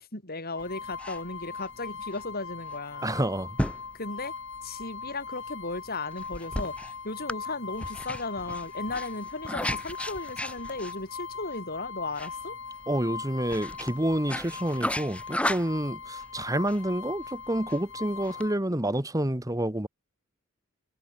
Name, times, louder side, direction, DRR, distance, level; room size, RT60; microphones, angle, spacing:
voice 1, 0.1-3.1 3.9-4.3 4.6-12.6, left 2 dB, 45° left, 7.7 m, -36 dB
sound 1, 0.6-18.6, left 5 dB, 60° left, 3.0 m, -40 dB
sound 2, 0.6-18.5, left 1 dB, 5° left, 7.6 m, -37 dB
voice 2, 3.0-3.6 12.9-19.9, right 1 dB, 15° right, 1.5 m, -28 dB
head